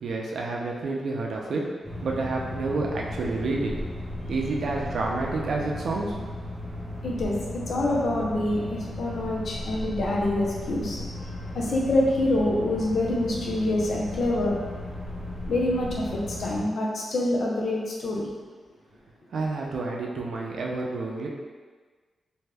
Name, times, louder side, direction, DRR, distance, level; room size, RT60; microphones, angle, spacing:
voice 1, 0.0-1.7 2.0-3.7 4.3-6.2 19.3-21.3, right 3 dB, 70° right, -1 dB, 0.4 m, -29 dB
sound 1, 1.8-16.6, left 1 dB, 20° right, 0.7 m, -36 dB
voice 2, 7.0-11.0 11.5-14.5 15.5-18.2, left 1 dB, 60° left, -3 dB, 0.6 m, -26 dB
2.6 x 2.2 x 3.3 m, 1.4 s
wide cardioid pair, 130°, 0 cm